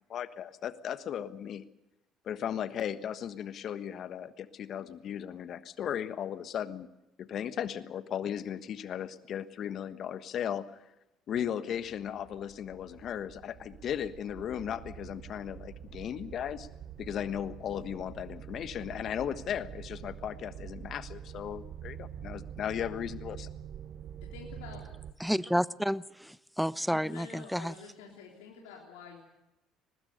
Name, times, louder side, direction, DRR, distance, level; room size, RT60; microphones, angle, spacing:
voice 1, 0.1-1.6 2.2-6.9 7.2-10.8 11.3-16.7 17.0-23.5, left 9 dB, 55° left, 12 dB, 1.4 m, -36 dB
sound 1, 11.7-25.1, right 9 dB, 55° right, 1.1 m, -46 dB
voice 2, 24.2-24.8 26.9-29.2, left 6 dB, 80° left, -1 dB, 3.5 m, -48 dB
voice 3, 25.2-27.7, equal, ahead, 18 dB, 0.8 m, -30 dB
23.0 x 20.0 x 6.7 m, 0.92 s
hypercardioid pair, 65°, 0 cm